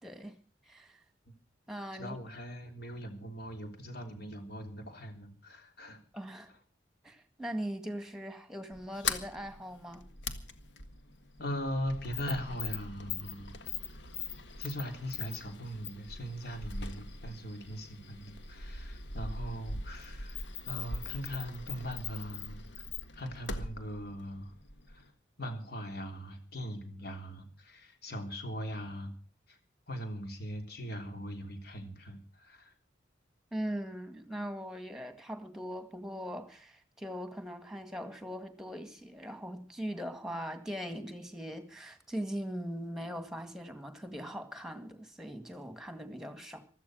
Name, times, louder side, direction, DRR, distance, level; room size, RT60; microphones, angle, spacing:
voice 1, 0.0-0.3 0.7-1.0 1.7-2.2 6.1-6.5 7.0-10.1 33.5-46.6, equal, 5° right, 1.9 m, -40 dB
voice 2, 1.9-6.0 11.4-13.6 14.6-22.6 23.1-24.5 24.9-25.1 25.4-29.1 29.5-29.6 29.9-32.7, equal, 55° left, 3.5 m, -40 dB
Sliding door, 8.7-25.1, left 4 dB, 70° left, 1.7 m, -41 dB
16.0 x 13.5 x 6.4 m
head